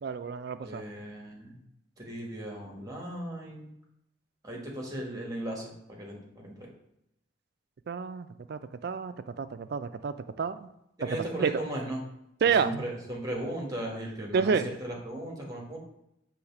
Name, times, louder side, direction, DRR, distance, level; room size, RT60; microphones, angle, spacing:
voice 1, 0.0-0.8 7.9-10.7 11.4-11.5 12.4-12.8 14.3-14.8, right 6 dB, 55° right, 11 dB, 0.4 m, -29 dB
voice 2, 0.6-1.6 2.0-3.7 4.4-6.7 11.0-12.0 12.5-15.8, right 1 dB, 20° right, 0 dB, 1.3 m, -37 dB
6.4 x 3.2 x 5.9 m, 0.83 s
head